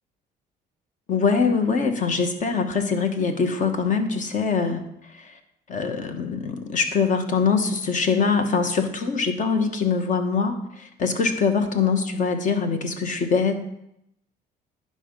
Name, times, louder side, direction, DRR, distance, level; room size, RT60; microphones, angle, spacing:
voice 1, 1.1-5.4 5.7-13.5, left 5 dB, 50° left, 7 dB, 1.3 m, -23 dB
11.0 x 5.1 x 5.4 m, 0.79 s
cardioid pair, 110°, 17 cm